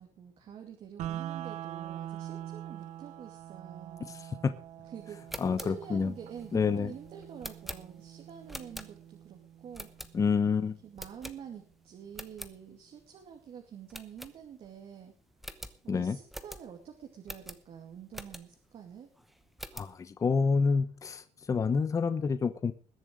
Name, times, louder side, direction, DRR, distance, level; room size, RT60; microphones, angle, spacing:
voice 1, 0.0-4.1 4.9-10.0 10.8-15.1 15.6-19.1, right 8 dB, 50° right, 2 dB, 2.5 m, -47 dB
sound 1, 1.0-11.0, right 12 dB, 70° right, 0.8 m, -44 dB
sound 2, 5.1-9.3 9.7-10.5 11.0-11.8 12.1-12.6 13.0-13.1 13.3-13.5 13.9-14.8 15.1-15.2 15.4-18.7 19.2-20.0, equal, ahead, 0.9 m, -45 dB
voice 2, 5.4-6.1 6.5-6.9 10.1-10.8 15.9-16.2 19.7-22.7, left 5 dB, 25° left, 10 dB, 1.0 m, -28 dB
21.0 x 7.3 x 5.1 m, 0.36 s
cardioid pair, 155°, 13 cm